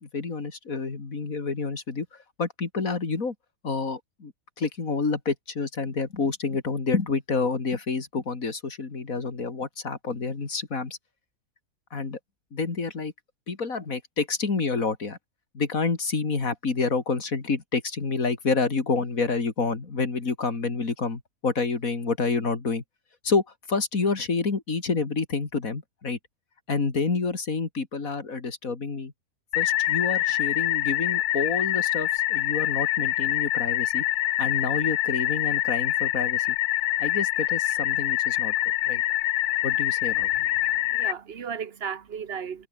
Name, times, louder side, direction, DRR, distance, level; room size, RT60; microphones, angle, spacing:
voice 1, 0.0-2.1 2.4-3.3 3.6-4.3 4.6-11.0 11.9-12.2 12.5-13.1 13.5-15.2 15.5-22.8 23.2-23.4 23.7-26.2 26.7-29.1 29.6-34.0 34.4-36.6 37.0-38.5 38.8-39.0 39.6-40.3, left 4 dB, 65° left, 3.1 m, -28 dB
sound 1, 29.5-41.1, left 14 dB, 85° left, 1.1 m, -25 dB
voice 2, 40.1-42.7, right 7 dB, 45° right, 1.2 m, -36 dB
omnidirectional pair, 1.6 m